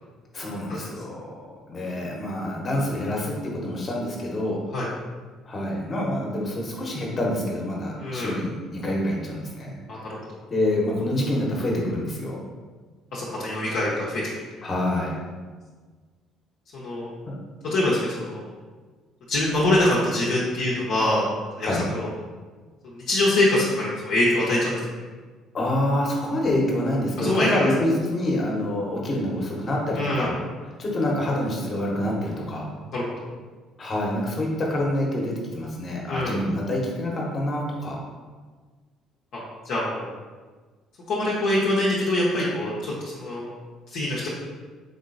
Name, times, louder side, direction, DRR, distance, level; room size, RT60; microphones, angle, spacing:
voice 1, 0.3-1.2 1.7-4.6 5.4-9.7 10.5-12.4 14.6-15.1 17.2-17.3 21.6-21.9 25.5-30.4 30.8-32.7 33.8-38.0, left 1 dB, 35° left, -2 dB, 1.1 m, -26 dB
voice 2, 8.0-8.4 9.9-10.2 13.1-14.2 16.7-17.1 17.6-18.5 19.3-21.3 21.6-22.1 22.9-24.8 27.2-27.7 30.0-30.3 32.9-33.0 36.1-36.4 39.6-40.1 41.1-43.5 43.9-44.3, left 1 dB, 55° left, -6 dB, 0.8 m, -24 dB
3.9 x 3.7 x 2.6 m, 1.4 s
figure-of-eight pair, 50°, 0 cm